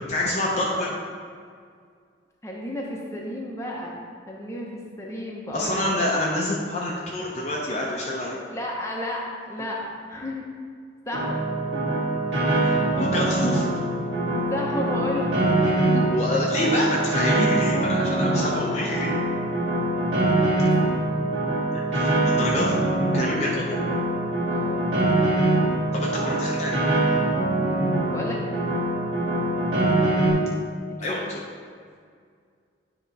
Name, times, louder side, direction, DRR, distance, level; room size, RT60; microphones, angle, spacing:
voice 1, 0.1-0.9 5.5-8.4 11.7-11.8 12.6-13.6 15.9-19.1 21.7-22.8 23.1-23.8 25.9-26.8 31.0-31.2, left 1 dB, 35° left, -4 dB, 0.7 m, -27 dB
voice 2, 2.4-4.0 4.3-6.0 8.3-10.4 11.1-11.4 13.1-13.2 14.2-15.3 18.8-19.2 20.8-21.0 23.6-24.2 24.5-25.1 28.1-28.4 30.9-31.3, left 1 dB, 15° left, -3 dB, 0.9 m, -33 dB
Piano, 11.1-30.3, right 2 dB, 75° right, 1.8 m, -23 dB
9.7 x 3.8 x 4.1 m, 2.1 s
head